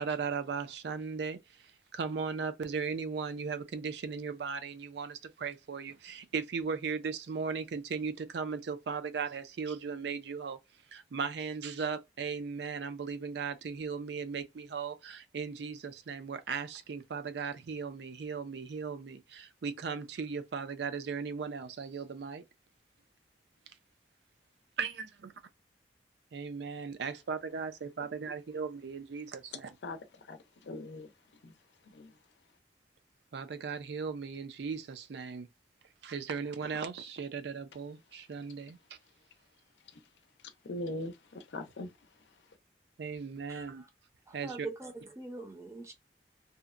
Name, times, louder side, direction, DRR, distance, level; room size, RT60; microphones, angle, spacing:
voice 1, 0.0-1.4 1.9-10.6 10.9-22.4 24.8-25.3 26.3-29.8 33.3-35.5 36.0-38.8 43.0-43.8 44.3-44.7, right 5 dB, 75° right, 0.4 m, -37 dB
voice 2, 30.6-31.1 31.4-31.5 31.9-32.1 40.6-41.9, left 1 dB, 80° left, 0.5 m, -40 dB
voice 3, 43.5-43.9 44.3-45.9, right 3 dB, 15° right, 0.5 m, -43 dB
2.7 x 2.1 x 2.4 m
head